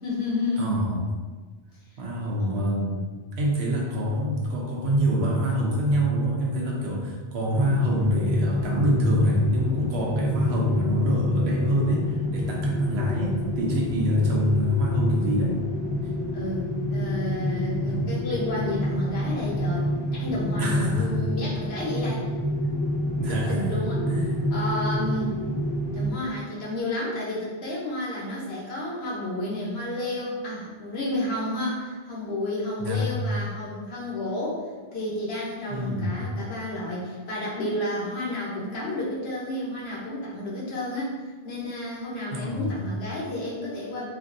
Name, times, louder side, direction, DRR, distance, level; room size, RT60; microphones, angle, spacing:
voice 1, 0.0-0.8 2.4-3.0 16.3-22.2 23.3-24.1 24.5-25.3 25.9-34.6 34.9-41.2 41.4-44.1, left 1 dB, 75° left, -6 dB, 1.2 m, -31 dB
voice 2, 0.6-1.0 2.0-3.1 3.4-15.6 17.8-18.1 20.6-21.1 23.2-23.8 24.1-24.4 32.8-33.1 35.7-36.1 42.3-42.7, equal, 80° right, -2 dB, 1.0 m, -25 dB
sound 1, 7.5-26.1, left 1 dB, 50° right, 1.3 m, -28 dB
4.3 x 2.6 x 2.6 m, 1.4 s
omnidirectional pair, 1.1 m